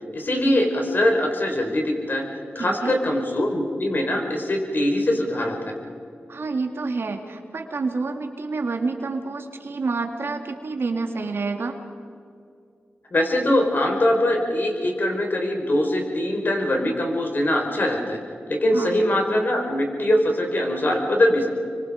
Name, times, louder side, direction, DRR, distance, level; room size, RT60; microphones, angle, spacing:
voice 1, 0.1-2.2 2.5-5.7 13.1-18.2 18.5-21.5, left 1 dB, 50° left, 2 dB, 4.7 m, -22 dB
voice 2, 2.6-3.0 6.3-11.8 18.7-19.0, right 3 dB, 70° right, 5 dB, 2.2 m, -28 dB
26.5 x 24.5 x 5.1 m, 2.5 s
cardioid pair, 60°, 4 cm